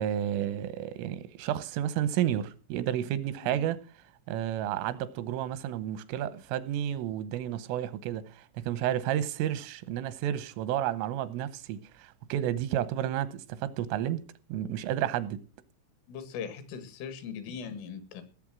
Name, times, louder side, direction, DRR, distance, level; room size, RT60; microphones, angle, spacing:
voice 1, 0.0-3.8 4.3-14.2 14.5-15.4, right 11 dB, 90° right, 3.5 m, -31 dB
voice 2, 16.1-18.2, left 6 dB, 85° left, 4.4 m, -39 dB
18.0 x 7.7 x 6.2 m
omnidirectional pair, 5.6 m